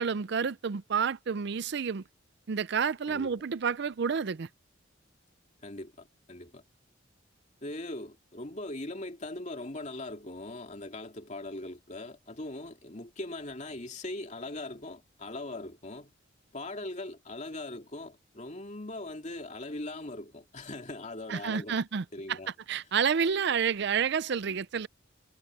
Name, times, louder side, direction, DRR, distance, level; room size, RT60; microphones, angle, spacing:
voice 1, 0.0-2.0 2.5-4.5 21.3-22.4 22.7-24.9, right 6 dB, 60° right, 0.5 m, -29 dB
voice 2, 3.1-3.4 5.6-6.6 7.6-16.1 16.5-21.8 22.1-22.5, left 2 dB, 35° left, 2.7 m, -40 dB
head